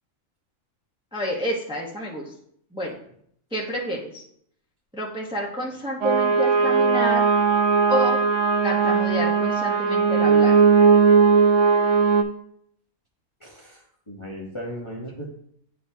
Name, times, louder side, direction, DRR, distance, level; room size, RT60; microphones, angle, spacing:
voice 1, 1.1-2.3 2.7-3.0 3.5-4.2 4.9-7.3 7.9-8.2 8.6-10.6, equal, 5° right, -1 dB, 0.8 m, -29 dB
sound 1, 6.0-12.2, right 5 dB, 65° right, 0.9 m, -18 dB
voice 2, 13.4-15.3, equal, 25° left, -3 dB, 0.9 m, -37 dB
9.8 x 4.2 x 2.8 m, 0.68 s
omnidirectional pair, 1.6 m